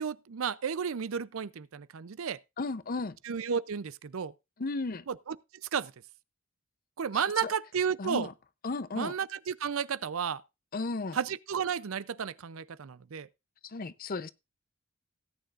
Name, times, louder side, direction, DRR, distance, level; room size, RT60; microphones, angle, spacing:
voice 1, 0.0-2.4 3.3-4.3 5.1-5.4 5.7-5.9 7.0-8.3 9.0-10.4 11.2-13.3, right 7 dB, 75° right, 0.5 m, -32 dB
voice 2, 2.6-3.2 4.6-5.0 7.1-7.5 8.0-8.3 8.6-9.2 10.7-11.2 13.6-14.3, left 3 dB, 45° left, 0.7 m, -34 dB
17.5 x 9.2 x 2.5 m
head